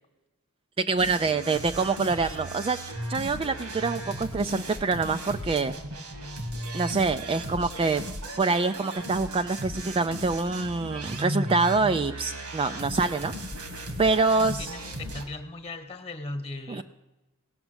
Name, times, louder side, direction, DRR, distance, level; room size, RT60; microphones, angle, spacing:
voice 1, 0.8-2.8 3.1-5.7 6.7-8.0 8.4-13.3 14.0-14.7 16.7-16.8, right 3 dB, 25° right, 9 dB, 0.3 m, -25 dB
sound 1, 1.0-15.2, right 1 dB, 85° right, 2.0 m, -36 dB
voice 2, 14.3-16.8, left 2 dB, 25° left, 9 dB, 1.2 m, -37 dB
17.5 x 6.0 x 8.0 m, 1.0 s
head